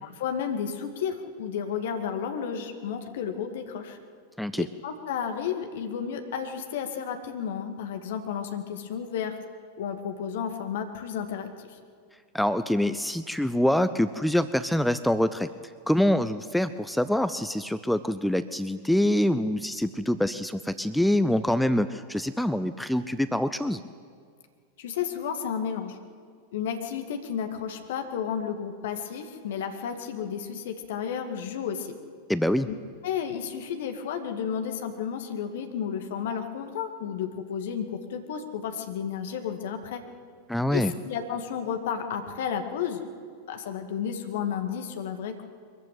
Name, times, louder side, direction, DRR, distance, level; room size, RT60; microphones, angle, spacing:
voice 1, 0.0-4.0 4.6-9.4 9.8-11.8 24.8-26.0 26.5-31.9 32.6-32.8 33.0-40.0 40.7-43.0 43.5-45.4, left 7 dB, 55° left, 6 dB, 2.2 m, -32 dB
voice 2, 12.3-15.5 15.9-23.8 32.3-32.7 40.5-40.9, left 1 dB, ahead, 13 dB, 0.6 m, -25 dB
23.0 x 14.5 x 9.3 m, 2.2 s
figure-of-eight pair, 90°, 0 cm